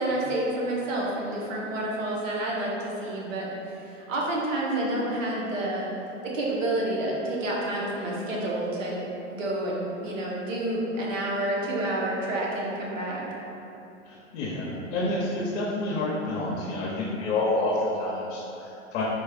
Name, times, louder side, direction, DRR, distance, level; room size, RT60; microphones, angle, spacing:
voice 1, 0.0-5.9 6.2-9.0 9.3-13.2, right 1 dB, 85° right, -4 dB, 1.0 m, -29 dB
voice 2, 14.1-19.0, left 2 dB, 65° left, -7 dB, 0.7 m, -29 dB
4.1 x 2.3 x 3.4 m, 2.9 s
hypercardioid pair, 115°, 37 cm